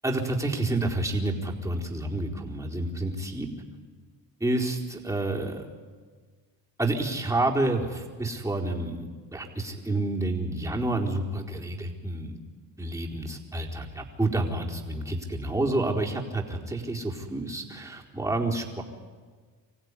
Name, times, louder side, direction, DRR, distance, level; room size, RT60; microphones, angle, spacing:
voice 1, 0.0-3.5 4.4-5.7 6.8-12.4 12.8-18.8, right 2 dB, 5° right, -1 dB, 4.2 m, -29 dB
26.0 x 15.5 x 9.9 m, 1.5 s
supercardioid pair, 75°, 42 cm